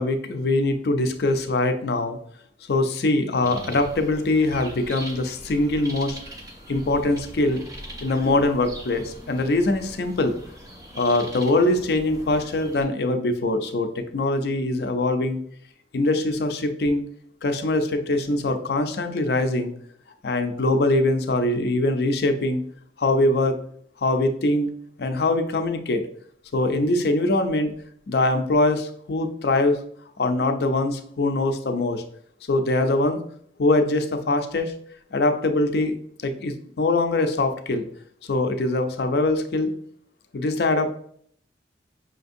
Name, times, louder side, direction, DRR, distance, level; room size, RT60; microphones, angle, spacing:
voice 1, 0.0-2.2 2.7-6.2 6.7-7.6 8.0-10.3 10.9-15.4 15.9-17.0 17.4-19.7 20.2-22.6 23.0-23.6 24.0-24.7 25.0-26.0 26.5-27.7 28.1-29.8 30.2-32.0 32.5-33.2 33.6-34.7 35.1-36.0 36.2-37.9 38.3-39.7 40.3-40.9, left 2 dB, 65° left, 6 dB, 0.5 m, -23 dB
sound 1, 3.4-12.8, right 1 dB, 20° right, 0.7 m, -41 dB
5.7 x 2.6 x 2.5 m, 0.62 s
head